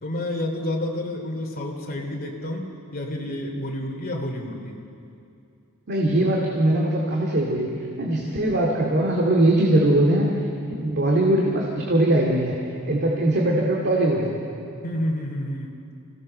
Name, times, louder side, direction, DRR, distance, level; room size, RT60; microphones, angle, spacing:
voice 1, 0.0-4.8 8.2-8.4 13.0-13.3 14.8-15.7, left 1 dB, 40° left, 0 dB, 3.0 m, -30 dB
voice 2, 5.9-7.7 8.0-10.3 10.8-12.6 12.9-14.4, right 1 dB, 50° right, -2 dB, 2.3 m, -21 dB
26.0 x 17.5 x 6.6 m, 2.5 s
head